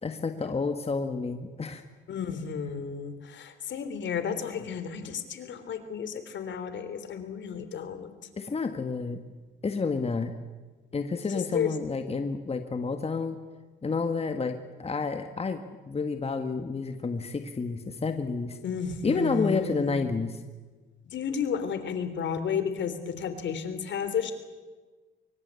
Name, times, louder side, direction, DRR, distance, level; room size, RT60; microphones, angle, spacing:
voice 1, 0.0-1.8 8.4-9.2 9.6-10.3 10.9-13.4 13.8-18.6 19.0-20.4, left 4 dB, 30° left, 7 dB, 1.9 m, -30 dB
voice 2, 2.1-8.1 11.3-11.7 18.6-20.0 21.0-24.3, left 7 dB, 65° left, 10 dB, 3.4 m, -32 dB
24.0 x 24.0 x 8.4 m, 1.3 s
cardioid pair, 90°, 20 cm